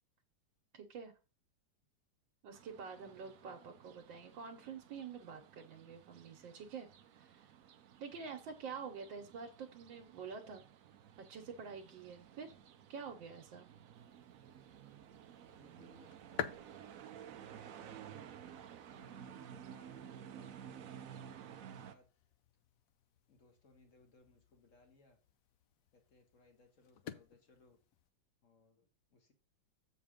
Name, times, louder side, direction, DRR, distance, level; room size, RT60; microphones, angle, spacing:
voice 1, 0.7-1.2 2.4-6.9 7.1-7.5 8.0-10.6 11.2-12.5 12.9-13.7, right 6 dB, 85° right, 2 dB, 1.6 m, -47 dB
sound 1, 2.5-21.9, right 9 dB, 65° right, 0.8 m, -54 dB
voice 2, 3.0-3.5 15.5-18.3 18.9-22.1 23.3-25.2 25.9-27.8 28.4-29.3, left 2 dB, 45° left, 4 dB, 1.7 m, -66 dB
sound 2, 13.9-28.1, left 8 dB, 75° left, 0.8 m, -52 dB
7.5 x 4.1 x 5.0 m, 0.33 s
omnidirectional pair, 2.0 m